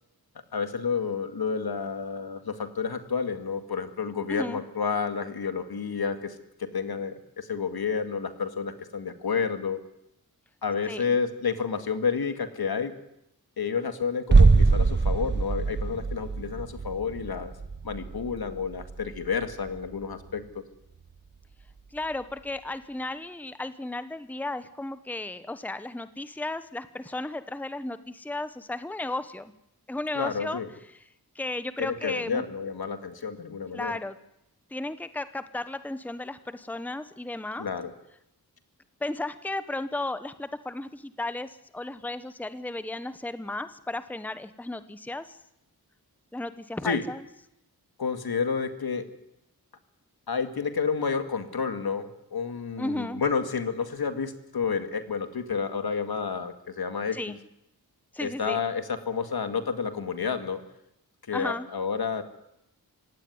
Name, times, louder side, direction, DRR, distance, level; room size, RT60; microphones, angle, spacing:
voice 1, 0.5-9.8 10.6-13.0 13.6-17.5 17.8-20.6 30.1-30.7 31.8-34.0 37.6-37.9 46.8-47.0 48.0-49.1 50.3-57.3 58.2-60.6 61.3-62.2, left 5 dB, 70° left, 9 dB, 2.2 m, -30 dB
sound 1, 14.3-20.0 20.3-20.4, right 4 dB, 30° right, 0.9 m, -23 dB
voice 2, 21.9-29.5 29.9-30.6 31.3-32.4 33.7-34.2 34.7-37.7 39.0-45.4 46.3-47.2 52.8-53.2 57.1-57.4 58.1-58.6 61.3-61.7, left 2 dB, 5° left, 12 dB, 0.9 m, -34 dB
25.5 x 17.0 x 9.5 m, 0.83 s
wide cardioid pair, 110°, 38 cm